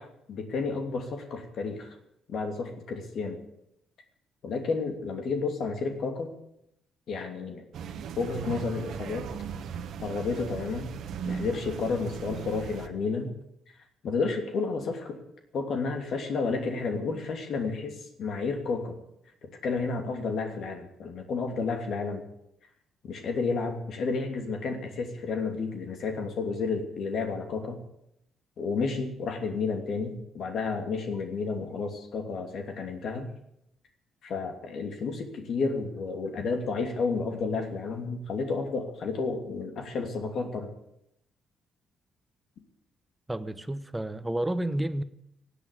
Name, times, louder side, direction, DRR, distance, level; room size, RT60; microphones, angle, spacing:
voice 1, 0.0-2.0 2.3-3.4 4.4-6.4 7.1-7.6 8.2-9.3 10.0-10.9 11.2-13.3 14.0-15.2 15.5-19.0 19.4-22.3 23.0-27.8 28.6-33.3 34.2-40.7, left 4 dB, 65° left, 2.9 m, -31 dB
sound 1, 7.7-12.9, right 7 dB, 75° right, 1.2 m, -37 dB
voice 2, 43.3-45.0, right 1 dB, 10° right, 1.0 m, -30 dB
16.5 x 8.3 x 9.9 m
cardioid pair, 90°, 0 cm